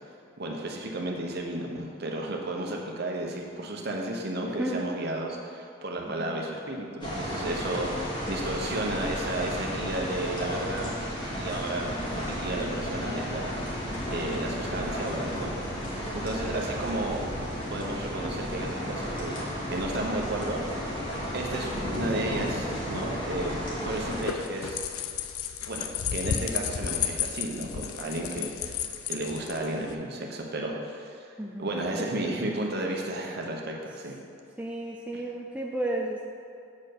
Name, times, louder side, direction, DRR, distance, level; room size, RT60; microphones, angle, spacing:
voice 1, 0.4-10.9 11.4-13.6 14.1-15.5 16.1-17.3 17.7-19.3 19.7-21.0 21.3-23.5 23.8-24.9 25.7-25.9 26.1-28.7 29.1-31.3 31.6-34.2 35.1-35.2, right 1 dB, 50° right, 0 dB, 1.0 m, -33 dB
voice 2, 6.1-6.4 16.3-16.5 31.4-31.8 34.6-36.2, right 1 dB, 5° right, -1 dB, 0.4 m, -33 dB
sound 1, 7.0-24.2, equal, 25° left, 1.8 m, -33 dB
sound 2, 23.9-30.0, left 8 dB, 90° left, 0.5 m, -33 dB
7.2 x 4.4 x 6.6 m, 2.6 s
head